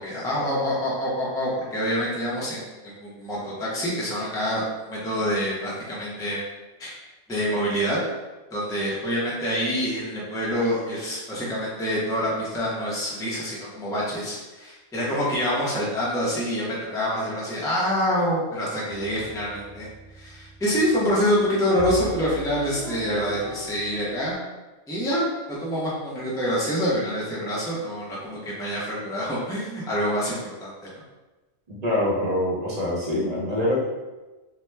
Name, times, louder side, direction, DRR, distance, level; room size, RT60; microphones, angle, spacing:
voice 1, 0.0-6.4 6.8-6.9 7.3-8.0 8.5-19.9 20.1-24.3 24.9-30.7, equal, 5° left, -6 dB, 0.4 m, -26 dB
sound 1, 18.9-24.3, right 3 dB, 65° right, 1.1 m, -39 dB
voice 2, 31.8-33.8, left 1 dB, 40° right, -5 dB, 0.7 m, -24 dB
2.8 x 2.2 x 3.2 m, 1.1 s
omnidirectional pair, 1.3 m